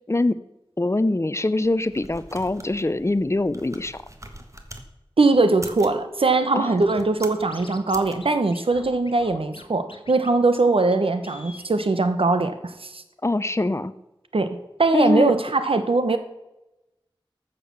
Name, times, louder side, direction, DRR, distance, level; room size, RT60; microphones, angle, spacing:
voice 1, 0.8-4.0 6.5-6.7 13.2-13.9 14.9-15.3, left 2 dB, 30° left, 14 dB, 0.7 m, -23 dB
sound 1, 1.6-4.9 5.5-6.0 6.7-7.5 7.9-8.2, right 1 dB, 35° right, 1.5 m, -43 dB
voice 2, 5.2-13.0 14.3-16.2, right 3 dB, 90° right, 9 dB, 1.1 m, -21 dB
Scratching (performance technique), 6.9-7.0 7.2-8.0 8.2-8.3 8.5-9.6 9.9-10.3 10.5-10.6 10.9-11.0 11.2-11.7, left 3 dB, 75° left, 1.2 m, -43 dB
13.5 x 6.8 x 7.0 m, 0.95 s
wide cardioid pair, 55°, 9 cm